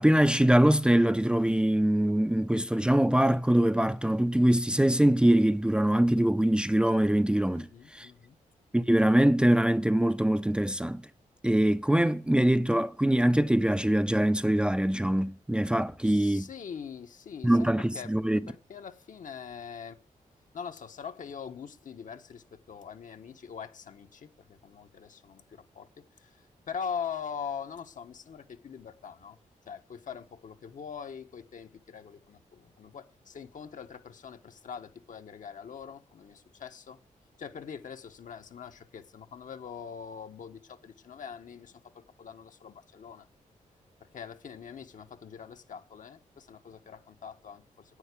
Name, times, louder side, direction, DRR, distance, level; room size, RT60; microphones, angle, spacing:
voice 1, 0.0-7.7 7.9-8.1 8.7-11.0 11.4-16.5 17.4-18.4, right 1 dB, 5° right, 0.6 m, -23 dB
voice 2, 7.5-8.4 16.0-18.1 18.5-20.0 20.5-29.4 29.6-37.0 37.4-43.3 44.0-48.0, left 7 dB, 65° left, 1.2 m, -43 dB
9.8 x 9.4 x 8.3 m
cardioid pair, 90°, 14 cm